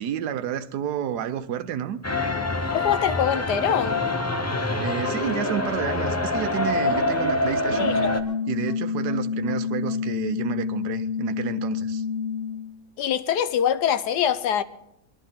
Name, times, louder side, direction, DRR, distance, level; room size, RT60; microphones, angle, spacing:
voice 1, 0.0-2.0 4.8-7.9 8.5-12.0, right 9 dB, 80° right, 1.3 m, -30 dB
sound 1, 2.0-8.2, left 2 dB, 25° left, 0.3 m, -25 dB
voice 2, 2.7-4.0 7.8-8.2 13.0-14.6, left 9 dB, 85° left, 1.4 m, -24 dB
sound 2, 7.7-12.7, left 6 dB, 50° right, 1.6 m, -28 dB
21.5 x 12.0 x 3.6 m
omnidirectional pair, 1.7 m